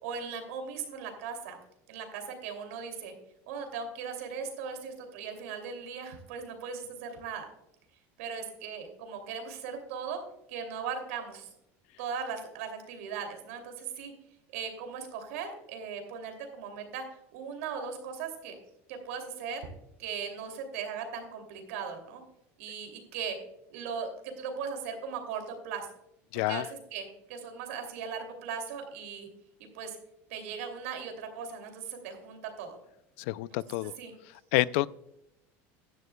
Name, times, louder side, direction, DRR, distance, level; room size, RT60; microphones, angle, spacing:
voice 1, 0.0-1.6 1.9-3.1 3.5-7.4 8.2-10.2 10.5-11.5 12.0-14.1 14.5-17.0 17.3-18.6 18.9-19.6 20.0-22.2 22.6-23.4 23.7-25.9 26.5-26.7 26.9-29.3 29.7-30.0 30.3-32.8 34.0-34.1, right 6 dB, 90° right, 5 dB, 2.7 m, -38 dB
voice 2, 26.3-26.7 33.2-33.9 34.5-34.9, left 18 dB, 70° left, 20 dB, 0.3 m, -28 dB
15.0 x 11.0 x 2.3 m, 0.81 s
cardioid pair, 150°, 7 cm